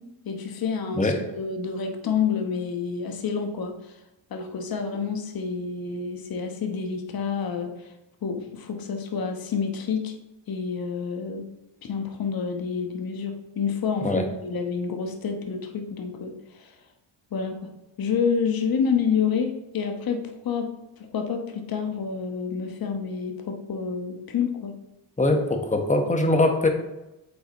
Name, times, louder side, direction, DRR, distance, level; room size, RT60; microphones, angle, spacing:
voice 1, 0.2-3.9 4.3-7.9 8.2-10.1 10.5-11.4 11.8-16.7 17.3-17.7 18.0-20.7 21.0-24.7, left 6 dB, 50° left, 5 dB, 1.1 m, -28 dB
voice 2, 25.2-26.7, left 2 dB, 15° left, 4 dB, 1.2 m, -22 dB
8.5 x 3.9 x 3.0 m, 0.95 s
supercardioid pair, 60°, 45 cm